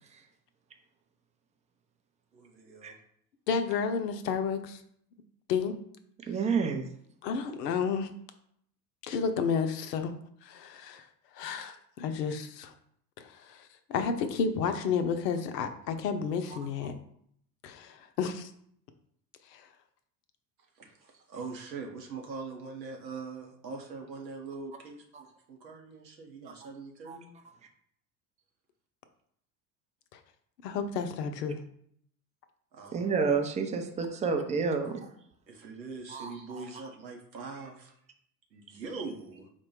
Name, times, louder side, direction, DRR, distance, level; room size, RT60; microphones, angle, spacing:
voice 1, 2.3-3.0 20.7-27.3 32.7-33.1 35.5-37.9 38.5-39.5, right 4 dB, 85° right, 2 dB, 0.9 m, -42 dB
voice 2, 3.5-4.8 5.5-5.7 7.2-8.1 9.0-10.1 10.4-11.0 11.3-12.7 13.2-16.9 17.6-18.5 19.5-19.7 30.1-30.2 30.6-31.6, left 6 dB, 75° left, 8 dB, 0.6 m, -31 dB
voice 3, 6.3-6.8 27.1-27.2 32.9-35.1 36.1-36.6, right 5 dB, 15° right, 5 dB, 0.4 m, -29 dB
4.2 x 2.2 x 4.5 m, 0.67 s
hypercardioid pair, 75°, 50 cm